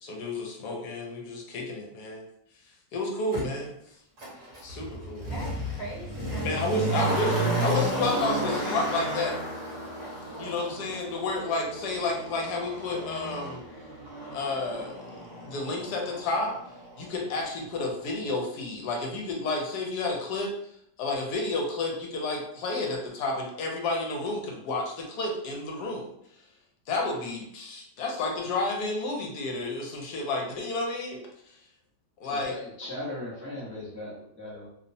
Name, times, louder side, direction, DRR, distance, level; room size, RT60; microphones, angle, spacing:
voice 1, 0.0-2.2 2.9-4.0 4.6-5.3 6.4-9.4 10.4-13.6 14.3-15.0 15.4-16.5 17.0-20.5 21.0-26.1 26.9-31.2 31.5-31.6 32.2-32.5, left 2 dB, 75° left, 0 dB, 1.2 m, -31 dB
Motor vehicle (road), 3.3-3.4 4.2-17.1 17.4-17.5, right 1 dB, 55° right, 1.0 m, -33 dB
voice 2, 5.3-7.1 7.5-8.2 10.0-11.1, equal, 40° left, -6 dB, 0.9 m, -41 dB
voice 3, 32.3-34.7, left 1 dB, 20° right, -9 dB, 0.3 m, -38 dB
2.9 x 2.0 x 2.6 m, 0.71 s
omnidirectional pair, 1.8 m